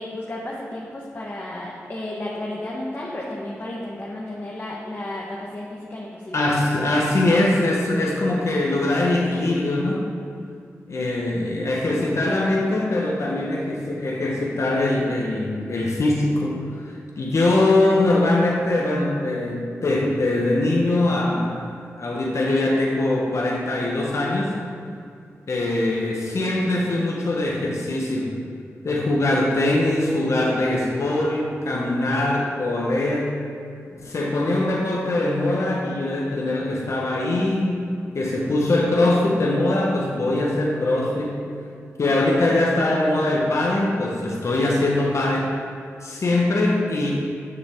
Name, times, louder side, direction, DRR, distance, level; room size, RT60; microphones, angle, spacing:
voice 1, 0.0-6.4, left 1 dB, 40° left, -4 dB, 1.4 m, -33 dB
voice 2, 6.3-10.0 10.9-16.6 16.8-24.5 25.5-28.3 28.8-33.4 33.9-37.9 38.1-41.4 42.0-45.5 46.0-47.1, left 2 dB, 65° left, -2 dB, 1.3 m, -22 dB
9.6 x 6.7 x 3.8 m, 2.4 s
cardioid pair, 45°, 5 cm